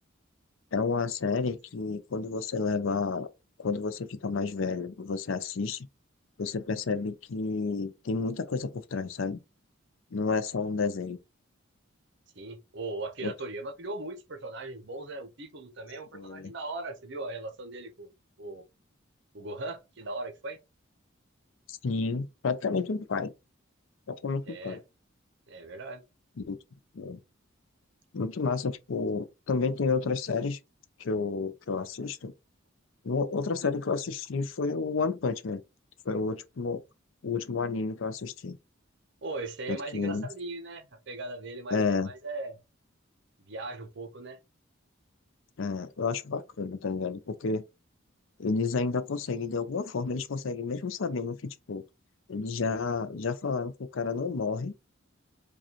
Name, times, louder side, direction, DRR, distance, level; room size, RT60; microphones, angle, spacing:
voice 1, 0.7-3.3 3.6-5.9 6.4-9.4 10.1-11.2 13.2-13.3 16.1-16.5 21.7-23.3 24.1-24.8 26.5-26.6 26.9-27.2 28.1-30.6 31.0-32.3 33.0-35.6 36.1-36.8 37.2-38.6 39.7-40.3 41.7-42.1 45.6-47.6 48.4-51.8 52.3-54.7, left 4 dB, 75° left, 0.5 m, -30 dB
voice 2, 12.4-18.1 18.4-18.6 19.3-20.6 24.4-24.8 25.5-26.0 39.2-42.6 43.4-44.4, right 2 dB, 60° right, 0.9 m, -38 dB
4.9 x 2.4 x 3.0 m
head